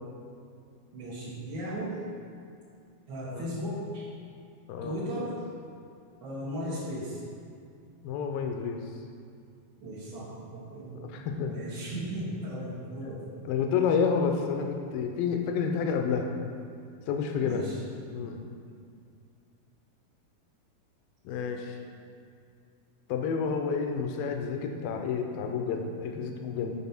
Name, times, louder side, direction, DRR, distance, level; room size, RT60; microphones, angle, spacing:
voice 1, 0.9-2.0 3.1-4.0 4.8-5.4 6.2-7.2 9.8-11.1 11.5-13.3 17.4-17.8, equal, 65° right, -9 dB, 1.2 m, -36 dB
voice 2, 4.7-5.0 8.0-8.8 10.9-11.5 13.4-16.3 17.1-17.7 18.1-18.4 21.3-21.8 23.1-26.8, left 6 dB, 80° left, 4 dB, 2.2 m, -29 dB
9.5 x 4.2 x 5.8 m, 2.3 s
omnidirectional pair, 4.5 m